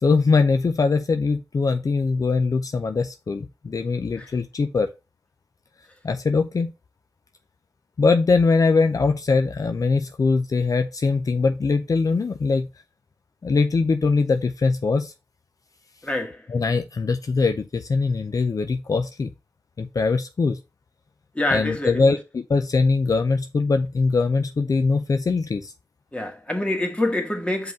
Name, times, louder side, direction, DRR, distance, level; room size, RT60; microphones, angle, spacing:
voice 1, 0.0-4.9 6.0-6.7 8.0-12.7 13.4-15.1 16.5-19.3 19.8-20.6 21.5-25.7, left 4 dB, 65° left, 0.5 m, -22 dB
voice 2, 16.0-16.5 21.3-22.0 26.1-27.7, left 1 dB, 20° left, 2.0 m, -26 dB
5.2 x 4.0 x 5.0 m
cardioid pair, 45°, 6 cm